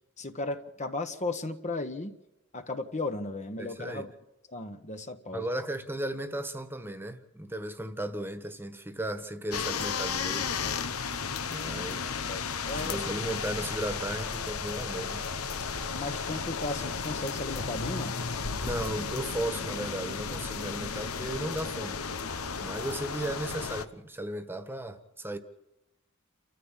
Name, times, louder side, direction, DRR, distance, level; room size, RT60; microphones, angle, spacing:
voice 1, 0.2-2.2 2.5-4.1 4.5-5.5 11.7-11.9 12.3-13.2 15.9-18.2, left 2 dB, 35° left, 1.3 m, -35 dB
voice 2, 3.6-4.1 5.3-10.6 11.4-12.1 12.8-15.2 18.6-22.1 22.6-25.4, right 1 dB, 10° right, 1.5 m, -35 dB
sound 1, 9.5-23.8, left 5 dB, 90° left, 1.2 m, -34 dB
29.5 x 14.0 x 7.5 m
head